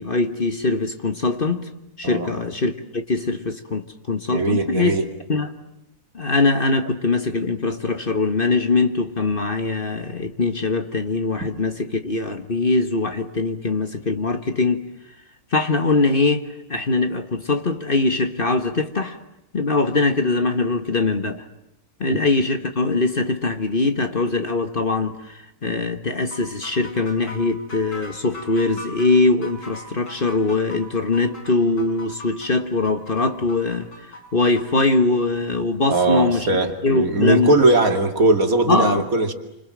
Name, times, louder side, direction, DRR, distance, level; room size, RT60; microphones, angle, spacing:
voice 1, 0.0-1.7 2.0-5.0 5.3-5.5 6.1-14.9 15.5-19.2 19.5-21.4 22.0-33.9 34.3-36.5 36.8-37.6 38.7-39.0, left 3 dB, 35° left, 1.7 m, -22 dB
voice 2, 4.3-5.1 22.1-22.2 35.9-39.3, right 2 dB, 65° right, 2.9 m, -19 dB
sound 1, 26.3-34.9, left 2 dB, 85° left, 7.1 m, -40 dB
29.0 x 26.5 x 7.6 m
omnidirectional pair, 1.6 m